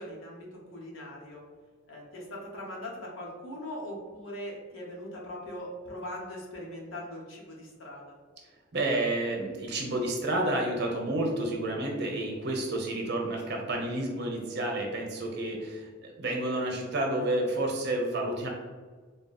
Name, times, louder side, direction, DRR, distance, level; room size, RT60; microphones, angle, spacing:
voice 1, 0.0-1.4 1.9-8.1, left 1 dB, 80° left, -2 dB, 1.1 m, -41 dB
voice 2, 8.7-18.5, right 1 dB, 55° right, 0 dB, 0.8 m, -30 dB
3.9 x 2.0 x 4.1 m, 1.4 s
head